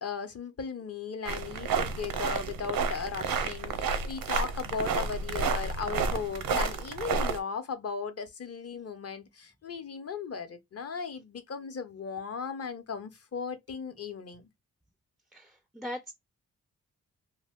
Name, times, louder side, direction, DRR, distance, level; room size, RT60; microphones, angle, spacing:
voice 1, 0.0-14.5, left 6 dB, 45° left, 0.7 m, -37 dB
sound 1, 1.3-7.4, right 5 dB, 85° right, 0.6 m, -31 dB
voice 2, 15.3-16.1, left 1 dB, ahead, 0.3 m, -40 dB
2.6 x 2.1 x 3.5 m
cardioid pair, 90°, 33 cm